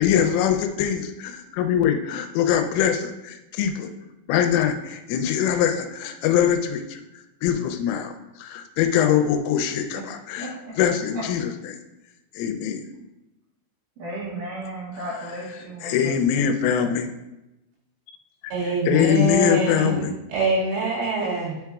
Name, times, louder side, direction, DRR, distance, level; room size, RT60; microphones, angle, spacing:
voice 1, 0.0-3.9 4.3-7.0 7.4-8.1 8.4-11.5 12.4-12.8 15.8-17.1 18.9-20.1, left 9 dB, 85° left, 5 dB, 3.0 m, -23 dB
voice 2, 10.4-10.7 11.1-11.2 14.0-16.9, right 1 dB, 60° right, -6 dB, 2.3 m, -35 dB
voice 3, 18.5-20.0 20.3-21.6, right 3 dB, 90° right, -5 dB, 4.7 m, -24 dB
9.7 x 5.7 x 2.3 m, 0.97 s
omnidirectional pair, 5.8 m